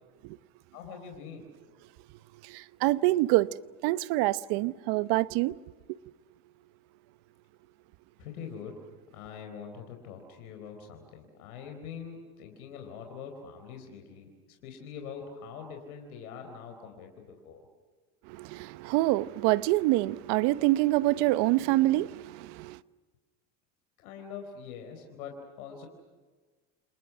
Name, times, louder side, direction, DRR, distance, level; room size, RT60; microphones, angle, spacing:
voice 1, 0.7-1.5 8.2-8.8 9.1-17.6 24.0-25.9, left 6 dB, 90° left, 4.4 m, -44 dB
voice 2, 2.5-3.5 3.8-5.5 18.4-22.8, right 18 dB, 70° right, 1.0 m, -26 dB
30.0 x 28.5 x 6.2 m
supercardioid pair, 95°, 43 cm